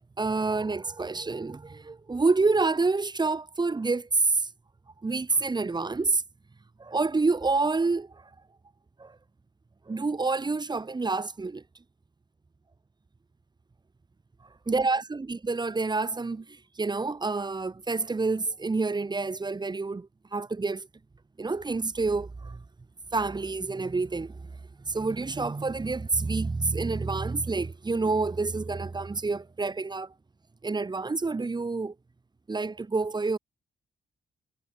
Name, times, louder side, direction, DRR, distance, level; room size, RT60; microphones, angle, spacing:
voice 1, 0.2-4.5 5.0-6.2 6.8-8.3 9.0-9.2 9.9-11.6 14.7-20.9 21.4-22.6 23.1-24.5 24.9-30.1 30.6-31.9 32.5-33.4, right 3 dB, 25° right, 7.1 m, -28 dB
cardioid pair, 100°, 16 cm